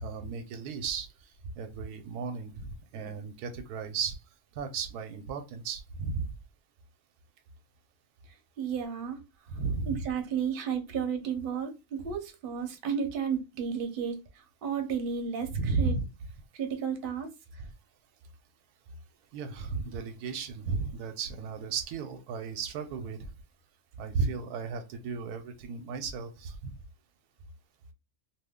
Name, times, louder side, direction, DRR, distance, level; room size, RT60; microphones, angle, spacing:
voice 1, 0.0-1.1 1.5-4.2 4.6-6.3 9.5-10.0 15.5-16.1 19.3-23.3 24.0-26.7, right 4 dB, 90° right, 1.1 m, -34 dB
voice 2, 8.6-9.2 9.9-14.2 14.6-15.9 16.6-17.3, right 7 dB, 45° right, 0.8 m, -32 dB
2.6 x 2.5 x 3.5 m
omnidirectional pair, 1.6 m